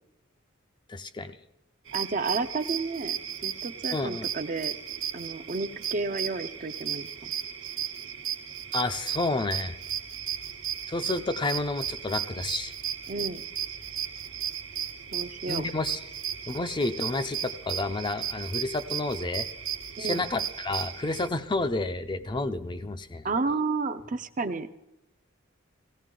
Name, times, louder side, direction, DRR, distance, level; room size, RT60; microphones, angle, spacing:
voice 1, 0.9-1.4 3.9-4.3 8.7-9.8 10.9-12.7 15.5-16.0 16.5-19.5 20.0-23.3, left 2 dB, 20° left, 9 dB, 0.5 m, -30 dB
voice 2, 1.9-4.8 5.1-7.3 13.1-13.4 15.1-15.6 20.0-20.2 23.2-24.7, right 3 dB, 40° right, 10 dB, 0.6 m, -31 dB
sound 1, 1.9-21.3, right 9 dB, 65° right, 1.1 m, -35 dB
sound 2, 8.9-23.0, left 3 dB, 55° left, 0.8 m, -55 dB
17.5 x 16.5 x 3.8 m, 0.90 s
head